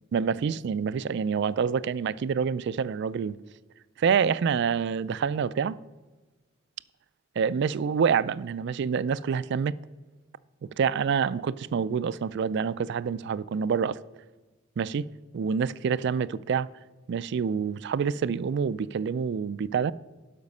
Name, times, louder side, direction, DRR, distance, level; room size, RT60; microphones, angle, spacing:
voice 1, 0.1-3.4 4.0-5.8 7.4-9.8 10.8-14.0 14.8-15.1 15.3-16.7 17.1-19.9, right 6 dB, 60° right, 0.3 m, -27 dB
12.0 x 5.1 x 5.4 m
head